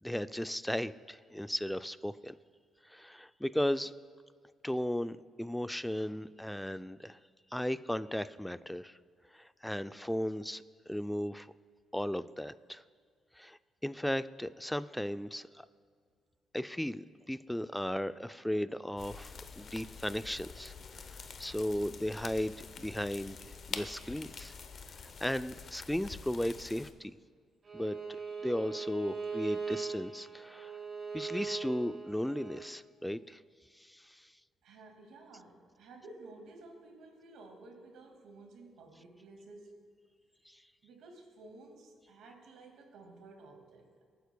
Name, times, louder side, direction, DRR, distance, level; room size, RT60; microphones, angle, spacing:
voice 1, 0.0-2.4 2.9-3.9 4.6-7.2 7.5-9.0 9.3-11.5 11.9-12.8 13.4-15.7 16.5-24.5 25.2-27.1 27.7-28.0 28.4-30.7 31.1-33.4 33.8-34.3 40.5-40.6, left 1 dB, 5° left, 13 dB, 0.3 m, -36 dB
sound 1, 19.0-26.9, left 5 dB, 50° left, 0.7 m, -46 dB
Bowed string instrument, 27.6-32.6, right 5 dB, 40° right, 3.1 m, -40 dB
voice 2, 34.6-39.9 40.8-44.0, right 2 dB, 85° right, 2 dB, 2.0 m, -53 dB
26.0 x 9.2 x 2.2 m, 2.1 s
cardioid pair, 90°, 0 cm